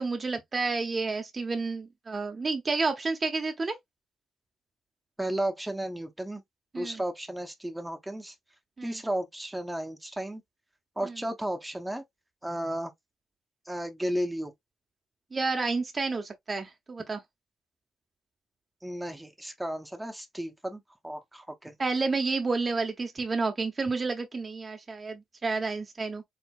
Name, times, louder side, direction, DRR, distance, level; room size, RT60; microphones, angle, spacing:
voice 1, 0.0-3.8 6.7-7.0 8.8-9.0 11.0-11.1 15.3-17.2 21.8-26.2, right 3 dB, 30° right, 0.8 m, -30 dB
voice 2, 5.2-6.4 6.8-8.3 8.8-10.4 11.0-12.0 12.4-12.9 13.7-14.5 18.8-21.7, right 1 dB, 5° right, 0.8 m, -34 dB
4.5 x 3.2 x 2.3 m
cardioid pair, 90°, 0 cm